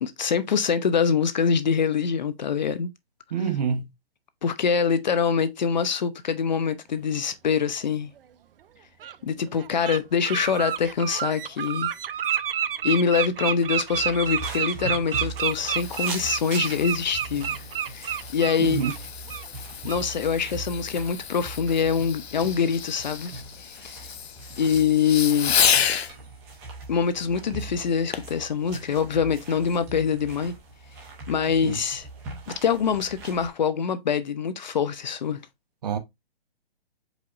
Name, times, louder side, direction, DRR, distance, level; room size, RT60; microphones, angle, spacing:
voice 1, 0.0-2.9 4.4-8.1 9.2-11.9 12.8-17.6 17.9-18.8 19.8-23.3 23.8-24.0 24.6-25.6 26.9-30.6 31.3-32.1 32.6-35.4, left 6 dB, 45° left, 0.5 m, -24 dB
voice 2, 3.3-3.8 18.6-18.9 31.6-31.8 35.8-36.0, right 7 dB, 40° right, 0.9 m, -26 dB
Bird, 8.2-8.3 9.0-9.1 9.6-10.0 10.2-19.0 19.3-19.5 19.9-20.0, right 9 dB, 60° right, 0.5 m, -29 dB
sound 1, 13.9-33.5, right 3 dB, 10° right, 0.6 m, -40 dB
Fireworks, 15.1-26.1 28.1-28.4 29.0-29.1, left 8 dB, 80° left, 0.7 m, -31 dB
4.9 x 4.0 x 2.4 m
hypercardioid pair, 160°, 31 cm